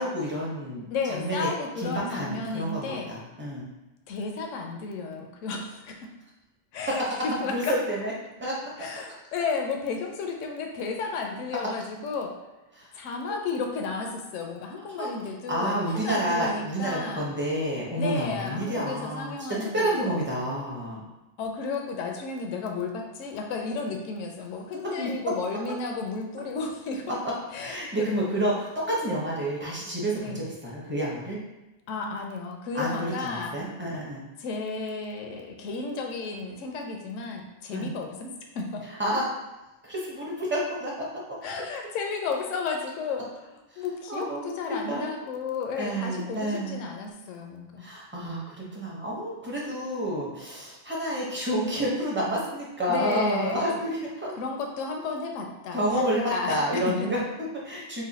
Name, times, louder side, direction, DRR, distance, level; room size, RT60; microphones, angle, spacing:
voice 1, 0.0-1.5 1.8-3.7 7.5-8.1 8.4-8.6 12.8-12.9 15.0-19.3 19.7-21.0 24.8-25.1 27.6-31.4 32.7-34.2 37.7-37.9 39.0-39.2 39.8-41.4 43.7-44.5 44.9-45.1 45.8-46.8 47.8-54.3 55.7-58.0, right 1 dB, 15° right, -5 dB, 0.5 m, -29 dB
voice 2, 0.9-3.1 4.1-6.1 6.7-7.7 8.8-12.3 12.9-17.3 17.9-20.3 21.4-27.2 27.5-28.1 30.2-30.4 31.9-33.5 34.4-38.3 38.5-38.9 41.4-43.2 43.5-47.9 52.9-53.6 54.4-56.8, left 4 dB, 75° left, 2 dB, 0.9 m, -33 dB
3.1 x 2.2 x 3.9 m, 1.0 s
omnidirectional pair, 1.3 m